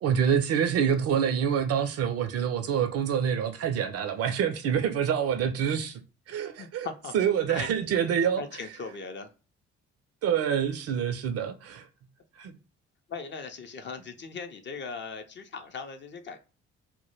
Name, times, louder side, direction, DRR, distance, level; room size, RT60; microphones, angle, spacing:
voice 1, 0.0-6.0 6.3-6.9 7.1-8.4 10.2-11.9 12.4-12.6, right 8 dB, 45° right, 0.4 m, -26 dB
voice 2, 6.6-7.1 7.5-7.7 8.4-9.3 13.1-16.4, left 5 dB, 35° left, 0.4 m, -39 dB
2.1 x 2.0 x 2.9 m
hypercardioid pair, 45°, 34 cm